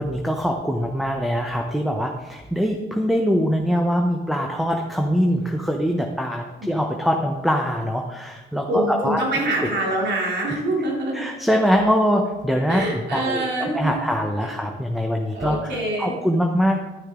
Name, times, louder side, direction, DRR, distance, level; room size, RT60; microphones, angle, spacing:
voice 1, 0.0-9.2 9.6-9.7 11.1-16.8, equal, ahead, 2 dB, 0.9 m, -23 dB
voice 2, 8.7-11.3 12.7-14.0 14.4-14.5 15.3-16.2, right 1 dB, 60° right, -3 dB, 3.2 m, -25 dB
12.0 x 6.3 x 3.7 m, 1.2 s
cardioid pair, 90°, 20 cm